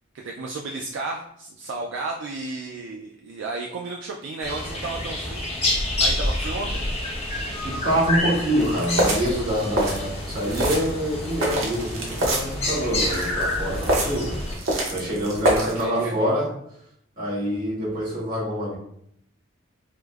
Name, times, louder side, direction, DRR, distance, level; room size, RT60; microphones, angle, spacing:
voice 1, 0.1-5.5 6.0-6.8 15.5-16.2, right 3 dB, 70° right, 0 dB, 0.3 m, -33 dB
sound 1, 4.4-14.5, left 1 dB, 30° left, 0.7 m, -28 dB
voice 2, 7.6-16.5 17.2-18.8, equal, 50° right, -6 dB, 1.3 m, -26 dB
sound 2, 8.6-15.8, right 1 dB, 85° right, 0.8 m, -27 dB
4.8 x 2.0 x 2.3 m, 0.72 s
head